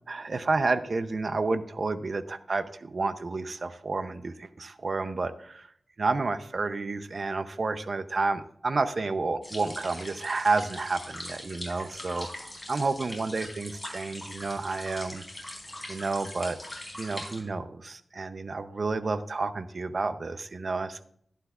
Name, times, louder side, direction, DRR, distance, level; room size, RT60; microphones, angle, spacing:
voice 1, 0.1-12.3 12.7-15.2 15.9-16.6 17.0-21.1, right 3 dB, 55° right, 11 dB, 0.6 m, -30 dB
sound 1, 9.4-17.4, left 1 dB, 10° left, 4.2 m, -42 dB
11.5 x 11.5 x 2.4 m, 0.64 s
wide cardioid pair, 80°, 0 cm